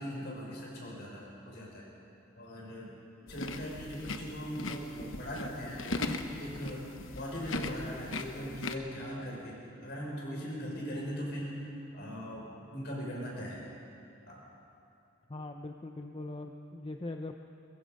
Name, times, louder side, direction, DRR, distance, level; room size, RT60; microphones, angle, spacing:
voice 1, 0.0-1.9 2.4-3.0 3.3-6.8 7.1-13.6 14.3-14.4, equal, 55° left, -3 dB, 5.8 m, -40 dB
sound 1, 3.3-8.8, left 2 dB, 75° left, 1.1 m, -39 dB
voice 2, 15.3-17.4, left 2 dB, 25° left, 5 dB, 0.6 m, -41 dB
22.0 x 22.0 x 5.3 m, 2.7 s
head